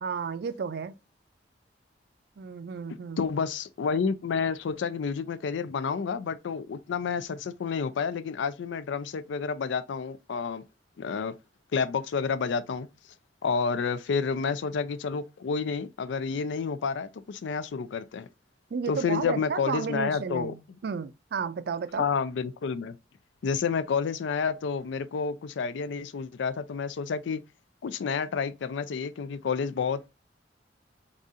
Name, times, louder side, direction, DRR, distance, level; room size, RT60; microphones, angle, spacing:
voice 1, 0.0-1.0 2.4-3.3 18.7-22.1, right 5 dB, 60° right, 0.4 m, -33 dB
voice 2, 3.2-10.6 11.0-11.3 11.7-12.9 13.4-18.3 18.9-20.5 22.0-23.0 23.4-27.4 27.8-30.1, left 5 dB, 85° left, 0.4 m, -30 dB
4.0 x 3.6 x 2.5 m
head